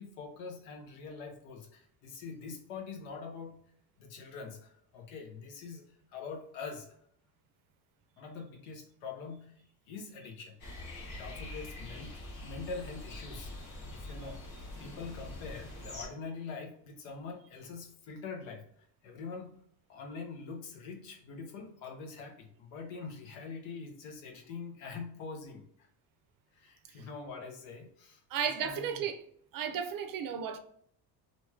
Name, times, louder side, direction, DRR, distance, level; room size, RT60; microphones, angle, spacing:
voice 1, 0.0-3.6 4.0-5.9 6.1-6.9 8.2-10.6 11.1-13.5 13.9-19.6 19.9-25.9 26.5-29.0, left 4 dB, 80° left, 0.9 m, -44 dB
sound 1, 10.6-16.1, left 2 dB, 55° left, 1.3 m, -44 dB
voice 2, 28.3-29.2 29.5-30.6, right 8 dB, 50° right, 0.5 m, -34 dB
2.9 x 2.7 x 2.3 m
supercardioid pair, 80°, 44 cm